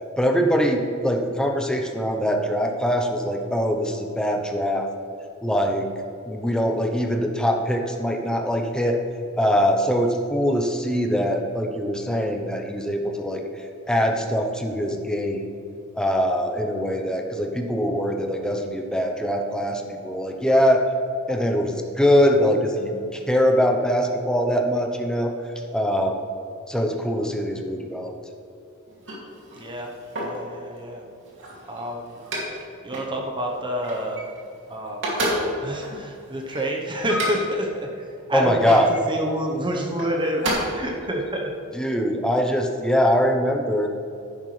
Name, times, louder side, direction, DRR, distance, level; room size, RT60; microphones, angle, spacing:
voice 1, 0.2-4.9 5.4-5.9 6.3-9.0 9.4-13.4 13.9-15.4 15.9-20.8 21.3-25.3 25.7-26.2 26.7-28.1 38.3-38.9 41.7-43.9, equal, 5° left, 2 dB, 0.8 m, -22 dB
sound 1, 28.9-30.5 31.1-32.6 32.9-33.1 33.5-34.6 34.9-37.6 38.3-39.0 39.8-40.5, equal, 55° right, 2.5 m, -30 dB
voice 2, 29.5-29.9 30.2-31.0 31.7-32.2 32.8-34.2 34.7-35.2 35.6-38.0 38.3-41.6, equal, 20° right, 1 dB, 0.9 m, -28 dB
11.0 x 10.0 x 3.3 m, 2.6 s
head